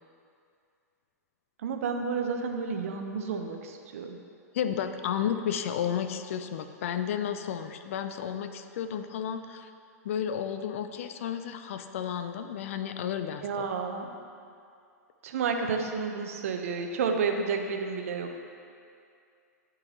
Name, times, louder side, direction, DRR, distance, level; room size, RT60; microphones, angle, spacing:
voice 1, 1.6-4.2 13.4-14.1 15.2-18.4, right 5 dB, 55° right, 4 dB, 0.6 m, -31 dB
voice 2, 4.5-9.7 10.0-13.7, left 8 dB, 50° left, 9 dB, 0.4 m, -32 dB
10.5 x 3.8 x 3.1 m, 2.4 s
figure-of-eight pair, 100°, 9 cm